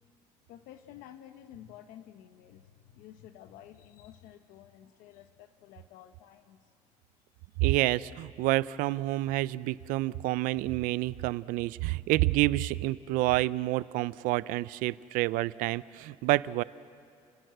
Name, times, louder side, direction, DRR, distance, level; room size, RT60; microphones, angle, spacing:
voice 1, 0.5-6.6, left 11 dB, 70° left, 9 dB, 1.0 m, -51 dB
voice 2, 7.6-16.6, right 18 dB, 70° right, 19 dB, 0.5 m, -28 dB
30.0 x 17.5 x 8.0 m, 2.5 s
cardioid pair, 170°, 15 cm